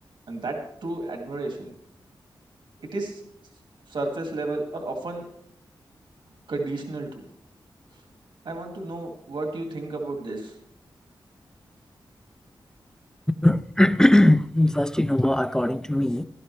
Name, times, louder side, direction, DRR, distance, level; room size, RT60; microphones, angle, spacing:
voice 1, 0.3-1.7 2.8-3.2 3.9-5.3 6.5-7.2 8.4-10.6, right 2 dB, 65° right, 2.1 m, -32 dB
voice 2, 13.4-16.2, left 1 dB, 5° left, 0.4 m, -20 dB
17.0 x 12.5 x 3.2 m
wide cardioid pair, 150°, 9 cm